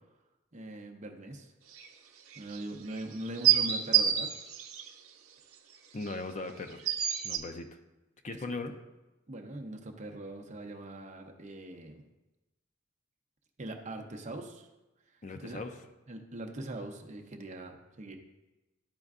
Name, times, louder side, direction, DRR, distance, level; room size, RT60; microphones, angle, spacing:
voice 1, 0.5-1.5 2.4-4.3 8.3-8.6 9.3-12.0 13.6-14.7 15.4-15.6 16.1-18.1, right 1 dB, 35° right, 3 dB, 0.7 m, -42 dB
sound 1, 1.8-1.9 2.3-2.6 2.9-3.0 3.3-4.9 6.1-6.2 6.9-7.4, right 11 dB, 90° right, 0.7 m, -27 dB
voice 2, 5.9-6.8 7.2-7.7 8.2-8.7 15.2-15.7, left 3 dB, 35° left, 7 dB, 0.5 m, -38 dB
12.0 x 4.4 x 2.4 m, 1.0 s
head